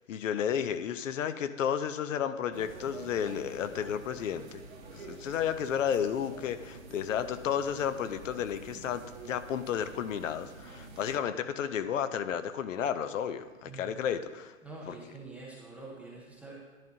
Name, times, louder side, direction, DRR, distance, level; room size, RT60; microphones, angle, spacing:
voice 1, 0.1-4.6 4.9-14.5 14.9-15.0, left 8 dB, 65° left, 12 dB, 0.7 m, -32 dB
sound 1, 2.5-11.2, right 3 dB, 80° right, 1.5 m, -48 dB
voice 2, 13.6-14.0 14.6-16.5, right 3 dB, 5° right, -5 dB, 0.4 m, -46 dB
10.5 x 9.2 x 2.8 m, 1.3 s
hypercardioid pair, 130°, 41 cm